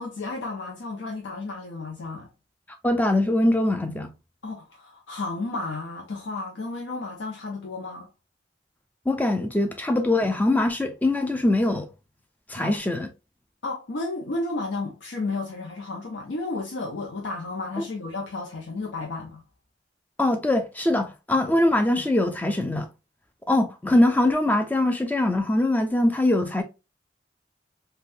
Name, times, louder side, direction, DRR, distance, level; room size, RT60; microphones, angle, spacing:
voice 1, 0.0-2.3 4.4-8.1 12.6-12.8 13.6-19.4, left 3 dB, 90° left, 0.6 m, -32 dB
voice 2, 2.8-4.1 9.1-11.9 12.5-13.1 20.2-22.9 23.5-26.6, left 1 dB, 10° left, 0.4 m, -22 dB
3.4 x 2.2 x 2.6 m
head